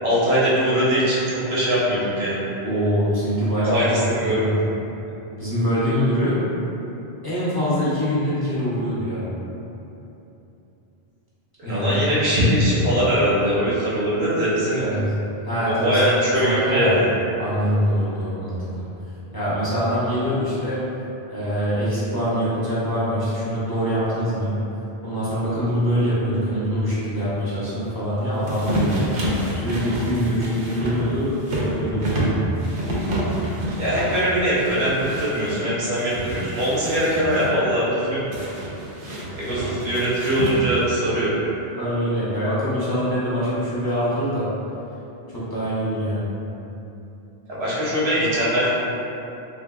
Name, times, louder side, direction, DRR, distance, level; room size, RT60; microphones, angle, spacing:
voice 1, 0.0-2.5 3.7-4.4 11.6-14.8 15.8-17.1 33.8-38.2 39.4-41.3 47.5-48.7, equal, 85° right, -8 dB, 1.2 m, -21 dB
voice 2, 2.6-3.9 4.3-4.5 5.4-6.4 7.2-9.3 11.6-11.9 12.2-12.3 14.8-15.1 15.4-17.0 17.4-18.8 19.3-20.8 21.3-24.6 25.0-29.1 29.5-32.4 41.7-44.5 45.3-46.3, equal, 30° left, -11 dB, 0.5 m, -24 dB
sound 1, 28.4-35.6 36.0-37.5 38.3-40.9, right 1 dB, 60° right, 0.7 m, -28 dB
3.4 x 2.7 x 2.3 m, 3.0 s
omnidirectional pair, 1.0 m